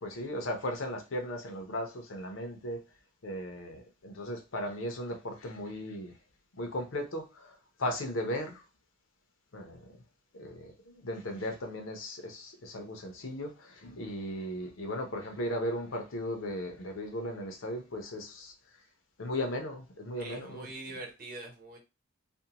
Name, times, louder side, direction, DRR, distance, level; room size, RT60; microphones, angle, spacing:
voice 1, 0.0-2.8 3.2-6.1 6.5-8.6 9.5-9.9 10.3-18.5 19.2-20.7, left 1 dB, 75° left, 0.7 m, -37 dB
voice 2, 20.2-21.8, right 2 dB, 45° right, 0.9 m, -43 dB
2.6 x 2.2 x 2.8 m
head